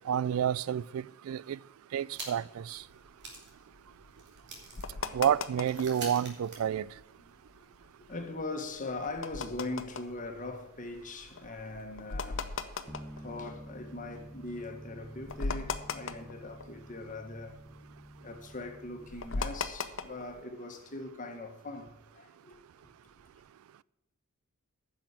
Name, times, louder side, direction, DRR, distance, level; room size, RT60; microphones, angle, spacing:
voice 1, 0.1-1.6 1.9-2.8 5.1-6.9, right 9 dB, 70° right, 0.3 m, -30 dB
sound 1, 2.1-2.6 2.9-3.0 3.2-7.3, right 3 dB, 55° right, 2.9 m, -46 dB
sound 2, 2.8-6.0 6.4-6.5 6.7-7.0 7.5-14.2 14.6-14.7 15.0-17.1 17.4-20.4, left 4 dB, 60° left, 0.8 m, -39 dB
voice 2, 7.8-12.6 13.2-17.6 18.2-22.6, left 2 dB, 40° left, 1.5 m, -41 dB
Bass guitar, 12.9-19.1, equal, 5° left, 1.2 m, -49 dB
10.0 x 6.5 x 8.3 m
head